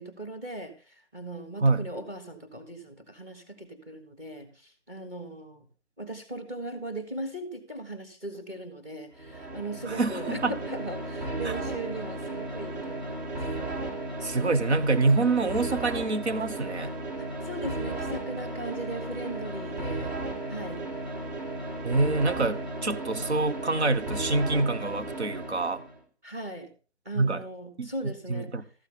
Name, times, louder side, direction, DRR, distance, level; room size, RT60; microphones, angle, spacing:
voice 1, 0.0-5.7 6.0-13.4 17.2-20.1 20.5-20.9 26.2-26.7 27.0-28.5, right 1 dB, 15° right, 1.4 m, -38 dB
sound 1, 9.1-26.0, right 2 dB, 35° right, 2.0 m, -35 dB
voice 2, 9.9-10.5 11.4-11.5 14.2-16.9 19.9-20.1 21.8-25.8 27.1-27.4 27.8-28.7, right 3 dB, 70° right, 1.1 m, -26 dB
13.5 x 8.2 x 3.9 m
figure-of-eight pair, 155°, 35 cm